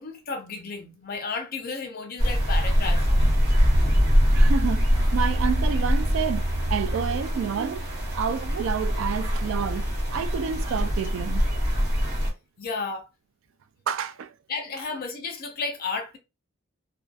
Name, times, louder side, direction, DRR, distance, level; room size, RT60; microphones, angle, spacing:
voice 1, 0.0-3.1 12.6-13.1 14.5-16.2, left 4 dB, 45° left, 0.5 m, -33 dB
sound 1, 2.2-12.3, equal, 50° right, 1.1 m, -23 dB
voice 2, 4.3-4.9 5.1-7.8 8.1-11.4 13.9-14.3, right 7 dB, 70° right, 0.3 m, -29 dB
2.5 x 2.2 x 2.4 m
head